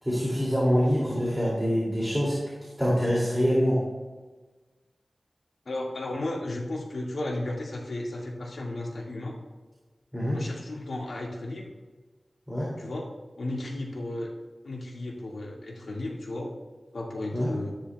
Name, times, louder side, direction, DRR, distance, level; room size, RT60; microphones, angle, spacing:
voice 1, 0.0-2.4 2.8-3.8 10.1-10.4 12.5-12.7 17.3-17.5, equal, 5° right, -6 dB, 2.6 m, -25 dB
voice 2, 5.7-9.4 10.3-11.7 12.8-13.1 13.4-14.3 14.6-16.5 16.9-17.7, left 1 dB, 75° left, -2 dB, 2.0 m, -34 dB
13.5 x 10.0 x 2.3 m, 1.3 s
wide cardioid pair, 65°, 0 cm